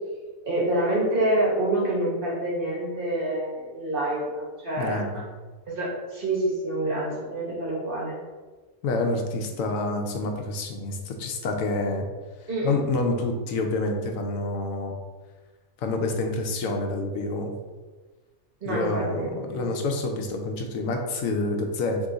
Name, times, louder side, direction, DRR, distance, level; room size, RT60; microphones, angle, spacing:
voice 1, 0.5-5.1 5.7-8.2 12.5-12.8 18.6-19.7, right 1 dB, 45° right, -5 dB, 1.2 m, -27 dB
voice 2, 4.8-5.2 7.5-7.6 8.8-12.1 12.6-15.0 15.8-17.5 18.7-22.0, left 2 dB, 80° left, 3 dB, 1.0 m, -28 dB
3.7 x 3.0 x 3.9 m, 1.3 s
omnidirectional pair, 1.4 m